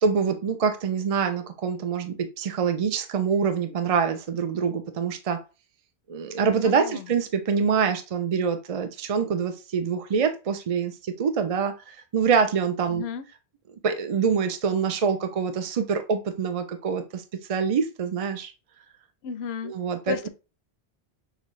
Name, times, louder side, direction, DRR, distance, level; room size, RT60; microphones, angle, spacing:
voice 1, 0.0-5.4 6.1-13.0 13.8-17.2 17.5-18.5 19.6-20.3, right 6 dB, 55° right, 0.4 m, -25 dB
voice 2, 6.6-7.0 12.9-13.2 19.2-19.7 20.1-20.3, left 8 dB, 75° left, 0.8 m, -33 dB
6.5 x 2.3 x 3.1 m
omnidirectional pair, 1.1 m